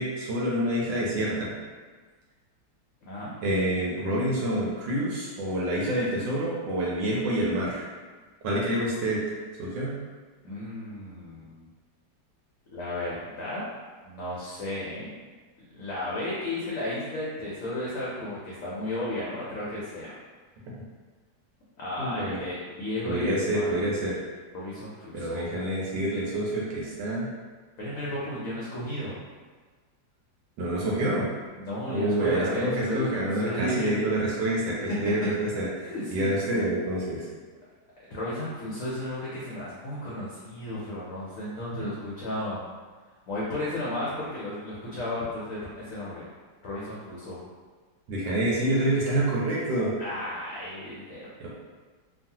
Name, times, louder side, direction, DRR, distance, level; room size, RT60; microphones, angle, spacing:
voice 1, 0.0-1.5 3.4-7.9 8.4-9.2 9.6-10.0 22.0-22.4 23.0-24.2 25.1-27.3 30.6-31.3 31.9-37.3 41.8-41.9 48.1-49.9 51.4-51.5, right 1 dB, 85° right, -5 dB, 1.3 m, -27 dB
voice 2, 3.0-3.3 10.4-11.7 12.7-13.6 14.0-15.1 15.7-20.1 21.8-23.8 24.5-25.5 27.8-29.2 31.5-34.2 34.9-35.3 35.9-36.4 38.1-42.6 43.3-46.3 46.6-47.4 50.0-51.5, left 1 dB, 65° left, -7 dB, 0.8 m, -33 dB
3.0 x 2.3 x 2.7 m, 1.4 s
omnidirectional pair, 2.0 m